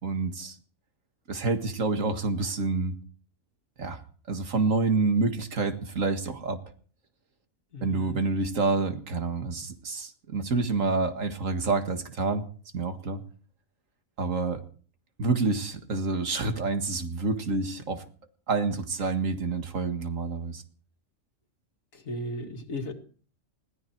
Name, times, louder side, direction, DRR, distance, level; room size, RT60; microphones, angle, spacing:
voice 1, 0.0-0.6 1.3-2.9 3.8-4.0 4.3-6.6 7.8-12.4 12.7-13.2 14.2-14.6 15.2-18.0 18.5-20.6, right 3 dB, 70° right, 7 dB, 2.1 m, -28 dB
voice 2, 7.7-8.1 21.9-22.9, left 1 dB, 80° left, 5 dB, 2.4 m, -35 dB
20.5 x 15.0 x 4.6 m, 0.43 s
omnidirectional pair, 1.4 m